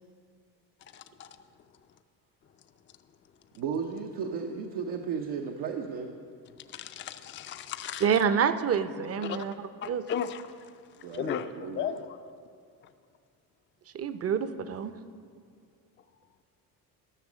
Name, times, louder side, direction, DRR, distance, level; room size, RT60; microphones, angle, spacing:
voice 1, 0.9-1.5 6.5-8.2 9.2-9.5 9.8-12.3, left 8 dB, 30° left, 9 dB, 0.4 m, -36 dB
voice 2, 3.5-6.2 11.0-12.0, right 6 dB, 80° right, 2 dB, 0.8 m, -35 dB
voice 3, 8.0-9.5 9.9-10.0 13.9-14.9, right 7 dB, 35° right, 12 dB, 0.6 m, -27 dB
12.5 x 6.1 x 6.2 m, 2.2 s
supercardioid pair, 85°, 41 cm